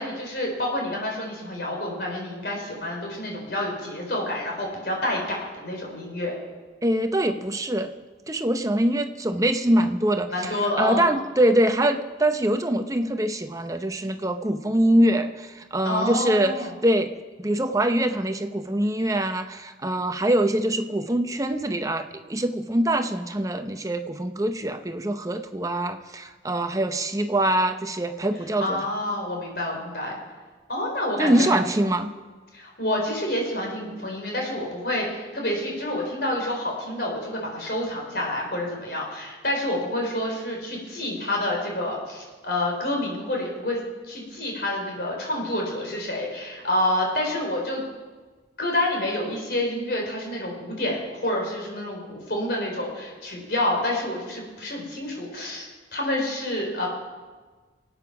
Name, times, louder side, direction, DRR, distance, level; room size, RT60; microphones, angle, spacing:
voice 1, 0.0-6.4 10.3-11.1 15.8-16.7 28.6-30.2 30.7-31.6 32.5-43.8 44.1-47.8 48.6-56.9, left 1 dB, 60° left, 0 dB, 4.4 m, -28 dB
voice 2, 6.8-7.9 8.3-17.1 17.4-28.8 31.2-32.1, right 1 dB, 20° right, 8 dB, 0.6 m, -24 dB
24.5 x 8.9 x 5.9 m, 1.4 s
head